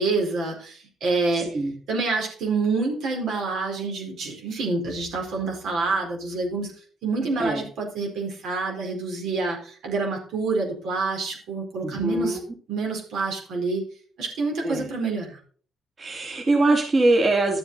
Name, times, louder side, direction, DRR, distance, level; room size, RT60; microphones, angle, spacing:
voice 1, 0.0-1.5 1.9-6.7 7.0-12.4 12.7-13.9 14.2-15.4, right 3 dB, 75° right, 0 dB, 4.5 m, -27 dB
voice 2, 1.4-1.7 7.4-7.6 11.8-12.4 14.6-14.9 16.0-17.6, right 2 dB, 40° right, 1 dB, 2.7 m, -22 dB
12.0 x 7.6 x 4.2 m, 0.43 s
cardioid pair, 90°, 0 cm